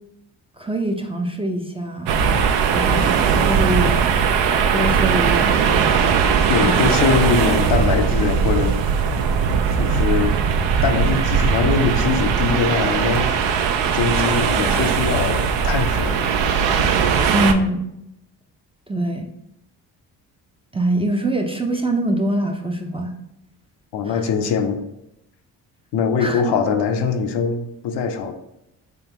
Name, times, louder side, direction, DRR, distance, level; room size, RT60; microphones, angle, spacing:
voice 1, 0.6-2.4 2.7-4.1 4.7-6.0 6.6-6.9 17.3-17.9 18.9-19.3 20.7-23.1 24.0-24.3 26.2-26.5, right 1 dB, 15° right, 2 dB, 0.4 m, -24 dB
sound 1, 2.1-17.5, right 6 dB, 75° right, 0.5 m, -19 dB
voice 2, 6.5-8.8 9.8-10.4 10.8-13.3 13.9-16.4 23.9-24.8 25.9-28.3, left 5 dB, 70° left, 6 dB, 0.6 m, -22 dB
3.5 x 3.5 x 2.9 m, 0.84 s
supercardioid pair, 60°, 45 cm